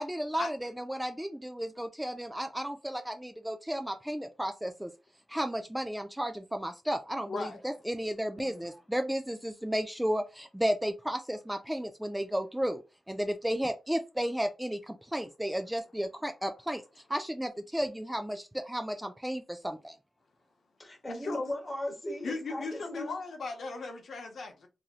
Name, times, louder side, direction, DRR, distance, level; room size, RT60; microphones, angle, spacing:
voice 1, 0.0-4.9 5.3-12.8 13.1-16.8 17.1-19.9, equal, 5° right, 0.3 m, -33 dB
voice 2, 7.3-7.6 21.2-21.5 22.2-24.7, left 3 dB, 70° left, 0.7 m, -37 dB
voice 3, 8.4-8.7 20.8-23.1, left 1 dB, 20° left, 1.1 m, -38 dB
3.0 x 2.6 x 2.3 m
wide cardioid pair, 100°, 0 cm